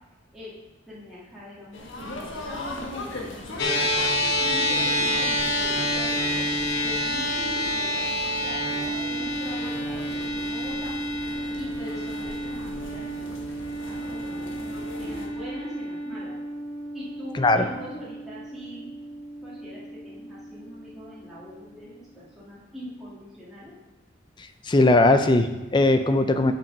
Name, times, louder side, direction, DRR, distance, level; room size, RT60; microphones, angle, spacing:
voice 1, 0.9-3.9 4.5-11.2 11.6-13.3 13.9-16.3 16.9-18.9 19.4-21.9 22.2-23.8, equal, ahead, -10 dB, 2.0 m, -42 dB
sound 1, 1.7-15.3, left 2 dB, 80° left, 1.4 m, -38 dB
sound 2, 3.6-22.1, equal, 55° left, 1.2 m, -29 dB
voice 2, 17.3-17.7 24.7-26.5, left 2 dB, 25° left, 8 dB, 0.5 m, -19 dB
7.4 x 5.9 x 5.4 m, 1.1 s
head